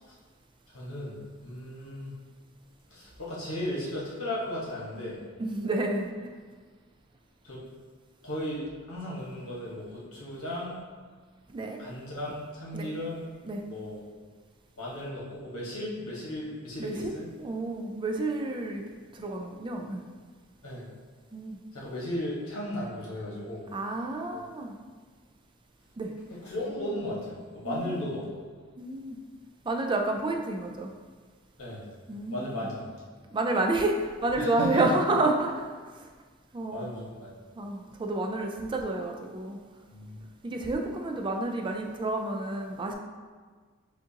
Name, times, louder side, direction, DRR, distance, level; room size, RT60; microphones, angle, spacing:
voice 1, 0.7-2.1 2.9-5.2 7.4-7.6 8.2-10.8 11.8-13.2 13.6-14.0 14.8-17.3 20.6-20.9 21.7-23.6 24.3-24.4 26.4-28.2 31.6-31.8 32.3-32.9 34.4-35.0 36.7-37.3 39.9-40.2, left 1 dB, 65° left, -6 dB, 1.3 m, -35 dB
voice 2, 5.4-6.3 11.5-11.8 12.7-12.9 13.4-13.6 16.8-17.1 17.4-18.8 19.1-20.0 21.3-21.6 23.7-24.8 26.0-26.1 27.6-28.1 28.8-29.2 29.7-30.9 32.1-32.7 33.3-36.1 36.5-36.9 37.6-39.6 40.4-42.9, right 2 dB, 20° right, 2 dB, 0.3 m, -30 dB
7.1 x 2.5 x 2.8 m, 1.5 s
head